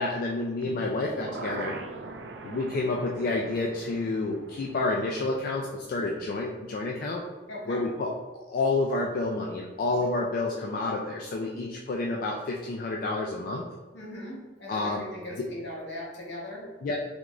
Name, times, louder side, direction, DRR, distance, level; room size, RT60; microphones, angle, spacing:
voice 1, 0.0-1.7 2.4-7.2 7.7-8.1 8.5-13.6 14.7-15.0 16.6-17.0, left 2 dB, 55° left, -1 dB, 0.3 m, -29 dB
sound 1, 0.6-6.6 6.9-7.0, right 3 dB, 70° right, 0.4 m, -42 dB
voice 2, 7.5-7.8 9.9-10.1 13.9-16.7, left 1 dB, 70° left, -4 dB, 1.1 m, -39 dB
3.5 x 3.0 x 2.4 m, 1.3 s
head